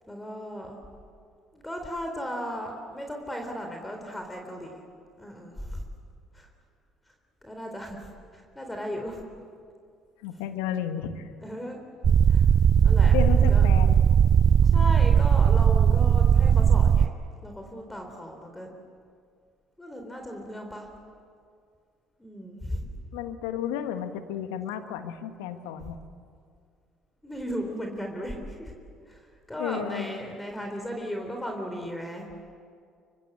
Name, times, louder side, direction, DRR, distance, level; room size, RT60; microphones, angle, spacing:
voice 1, 0.1-0.8 1.5-4.8 5.2-5.8 6.3-6.5 7.4-8.1 8.3-9.2 11.4-11.8 12.3-12.4 12.8-13.2 13.5-13.7 14.7-17.1 17.4-18.7 19.8-20.9 22.2-22.8 27.2-28.7 29.1-29.2 29.5-32.4, equal, 10° left, 3 dB, 3.9 m, -36 dB
voice 2, 10.2-11.3 13.1-14.0 23.1-26.0 29.6-30.1, left 9 dB, 80° left, 9 dB, 1.4 m, -32 dB
sound 1, 12.0-17.1, right 8 dB, 45° right, 0.6 m, -18 dB
25.0 x 24.5 x 8.2 m, 2.3 s
hypercardioid pair, 55°, 0 cm